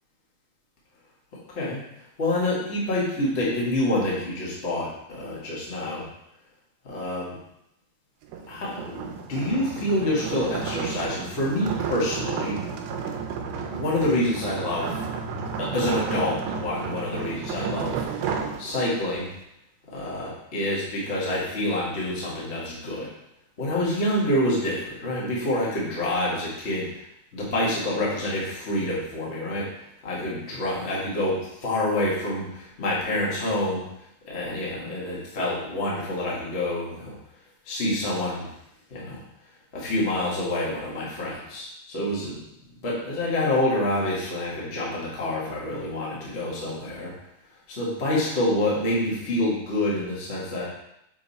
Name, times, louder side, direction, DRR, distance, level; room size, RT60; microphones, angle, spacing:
voice 1, 1.5-1.8 2.2-6.0 6.8-7.3 8.5-12.6 13.7-15.0 15.6-18.0 18.6-19.3 19.9-23.1 23.6-27.1 27.3-29.7 30.0-33.8 34.2-37.2 37.6-38.5 38.9-39.2 39.7-42.4 42.8-47.1 47.7-50.6, left 1 dB, 60° left, -5 dB, 0.6 m, -27 dB
sound 1, 8.2-19.2, right 6 dB, 90° right, 2.5 m, -32 dB
6.9 x 3.5 x 4.1 m, 0.82 s
omnidirectional pair, 4.1 m